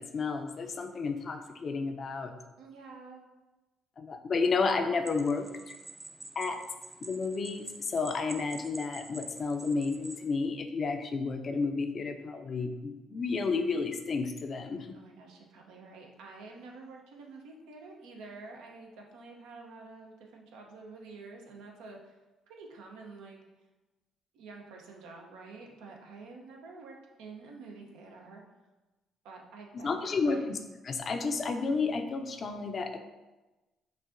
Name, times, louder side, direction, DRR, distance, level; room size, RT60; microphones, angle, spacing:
voice 1, 0.0-2.3 4.0-5.8 6.4-6.6 7.0-14.9 29.8-30.6 30.8-33.0, left 4 dB, 45° left, 6 dB, 0.4 m, -31 dB
voice 2, 2.6-3.2 14.9-22.1 22.5-23.4 24.3-28.4 29.2-30.5, right 3 dB, 85° right, 1 dB, 0.6 m, -48 dB
sound 1, 5.1-10.3, right 2 dB, 20° right, 0.4 m, -48 dB
5.5 x 2.5 x 2.5 m, 1.1 s
supercardioid pair, 70°, 0 cm